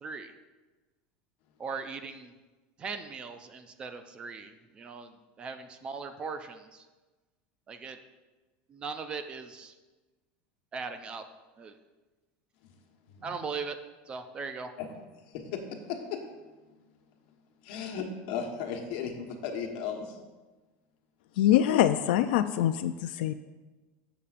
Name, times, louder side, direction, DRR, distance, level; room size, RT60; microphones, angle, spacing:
voice 1, 0.0-0.3 1.6-2.3 2.8-5.1 5.4-6.9 7.7-8.0 8.7-9.7 10.7-11.2 11.6-11.7 13.2-13.8 14.1-14.7, right 5 dB, 20° right, 9 dB, 0.3 m, -39 dB
voice 2, 15.3-16.2 17.6-20.2, left 6 dB, 55° left, 3 dB, 1.2 m, -36 dB
voice 3, 21.4-23.3, left 12 dB, 80° left, 9 dB, 0.3 m, -24 dB
13.5 x 7.0 x 2.5 m, 1.2 s
supercardioid pair, 175°, 5 cm